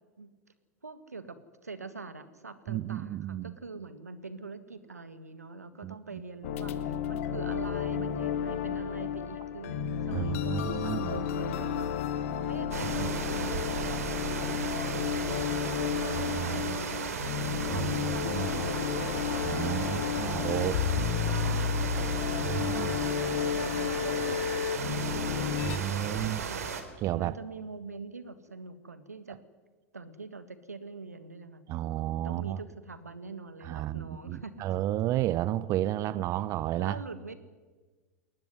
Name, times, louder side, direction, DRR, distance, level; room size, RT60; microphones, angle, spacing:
voice 1, 0.8-11.9 12.4-17.2 17.7-24.4 24.8-29.4 29.9-31.6 32.2-34.5 36.8-37.3, right 4 dB, 90° right, 1.8 m, -44 dB
voice 2, 2.7-3.5 5.8-6.0 10.1-11.1 16.0-16.3 17.7-17.9 18.2-18.5 19.4-20.9 22.4-22.9 25.7-26.4 27.0-27.4 31.7-32.6 33.6-37.0, right 13 dB, 40° right, 0.7 m, -32 dB
sound 1, 6.4-25.8, left 8 dB, 60° left, 1.7 m, -32 dB
sound 2, 12.7-26.8, right 6 dB, 75° right, 3.2 m, -35 dB
21.0 x 18.5 x 9.8 m
hypercardioid pair, 90°, 8 cm